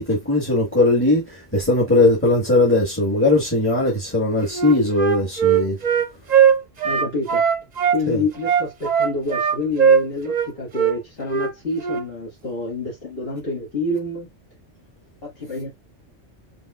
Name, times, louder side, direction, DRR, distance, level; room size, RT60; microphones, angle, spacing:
voice 1, 0.0-5.8 8.1-8.2, left 2 dB, 10° left, 1.5 m, -19 dB
Wind instrument woodwind instrument, 4.5-8.0 8.4-10.5 10.7-10.9 11.3-11.5 11.8-12.0, right 7 dB, 40° right, 0.7 m, -19 dB
voice 2, 6.8-7.4 7.9-14.3 15.2-15.7, left 2 dB, 55° left, 2.2 m, -28 dB
5.3 x 3.4 x 2.4 m
omnidirectional pair, 1.2 m